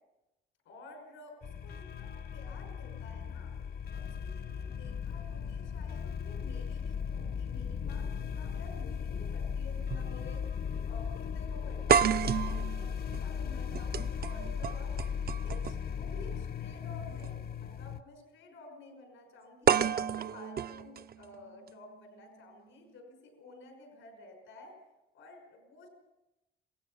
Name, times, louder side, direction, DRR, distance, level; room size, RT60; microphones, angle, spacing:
voice 1, 0.6-3.6 3.9-15.1 15.4-24.8 25.1-25.9, left 2 dB, 90° left, 3 dB, 5.8 m, -52 dB
sound 1, 1.4-18.0, left 7 dB, 50° left, 0.9 m, -37 dB
sound 2, 8.7-8.8 9.9-10.1 10.4-10.5 11.9-15.9 17.1-17.3 19.7-21.7, right 7 dB, 50° right, 0.7 m, -30 dB
27.5 x 18.0 x 5.6 m, 0.96 s
cardioid pair, 90°, 20 cm